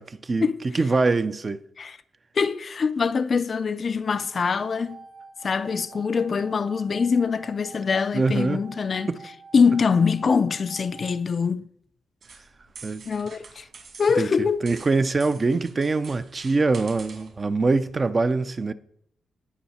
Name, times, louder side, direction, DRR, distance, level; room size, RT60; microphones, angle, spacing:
voice 1, 0.0-0.5 0.7-1.6 8.1-8.6 9.1-9.3 12.8-13.1 14.2-14.3 14.6-18.7, right 3 dB, 25° right, 0.5 m, -23 dB
voice 2, 2.4-5.0 5.4-9.1 9.5-11.6 13.1-13.7 14.0-14.7, left 5 dB, 35° left, 0.4 m, -23 dB
sound 1, 4.1-11.1, right 4 dB, 70° right, 6.0 m, -47 dB
sound 2, 12.2-17.4, right 5 dB, 50° right, 2.8 m, -47 dB
18.0 x 6.3 x 4.3 m
wide cardioid pair, 170°, 0 cm